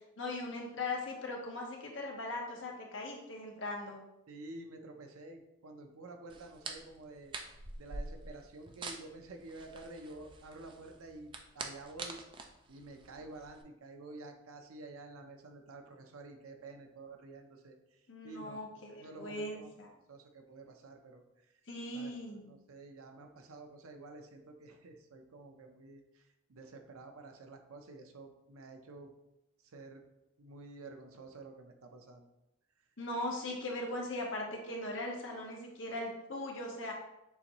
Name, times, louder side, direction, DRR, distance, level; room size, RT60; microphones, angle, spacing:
voice 1, 0.2-4.0 18.1-19.9 21.7-22.5 33.0-36.9, left 2 dB, 60° left, -1 dB, 0.9 m, -39 dB
voice 2, 4.3-7.3 7.8-12.2 12.7-18.6 18.9-19.7 20.1-21.5 21.9-29.1 29.6-30.0 30.4-32.3, right 2 dB, 90° right, 5 dB, 0.6 m, -50 dB
sound 1, 6.3-13.6, right 3 dB, 25° right, 0.3 m, -46 dB
6.8 x 2.6 x 3.0 m, 0.90 s
head